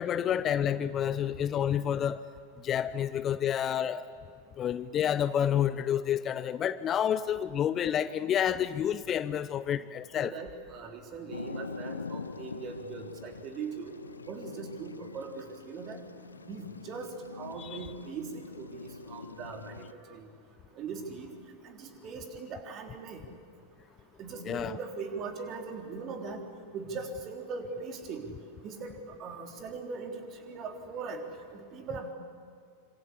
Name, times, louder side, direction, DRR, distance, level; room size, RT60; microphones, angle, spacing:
voice 1, 0.0-2.2 2.6-4.0 4.6-10.3 17.6-17.8 24.4-24.8, left 9 dB, 30° left, 15 dB, 0.7 m, -29 dB
voice 2, 10.1-14.0 14.3-16.0 16.5-20.3 20.7-21.3 21.6-23.3 24.2-26.4 26.7-28.3 28.6-28.9 29.2-31.2 31.5-32.1, right 4 dB, 35° right, 4 dB, 3.9 m, -40 dB
sound 1, 11.3-19.9, left 4 dB, 75° left, 0.7 m, -44 dB
26.5 x 26.0 x 8.6 m, 2.3 s
figure-of-eight pair, 90°, 0 cm